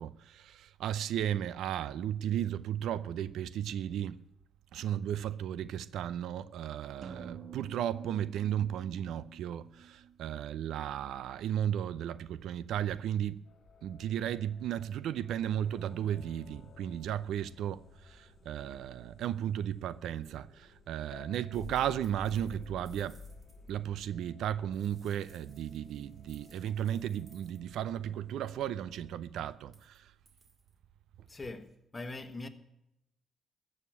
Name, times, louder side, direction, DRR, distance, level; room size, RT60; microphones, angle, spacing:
voice 1, 0.0-4.2 4.7-13.5 13.8-23.2 23.7-30.1, right 10 dB, 80° right, 0.5 m, -35 dB
sound 1, 7.0-10.8, right 7 dB, 60° right, 0.9 m, -49 dB
sound 2, 13.5-29.2, left 4 dB, 55° left, 1.3 m, -54 dB
sound 3, 21.5-23.7 24.7-27.6 29.6-30.0 30.3-30.8 31.6-31.8, right 3 dB, 40° right, 2.4 m, -65 dB
voice 2, 31.3-32.5, left 2 dB, 25° left, 1.4 m, -42 dB
14.5 x 6.5 x 8.8 m
cardioid pair, 90°, 0 cm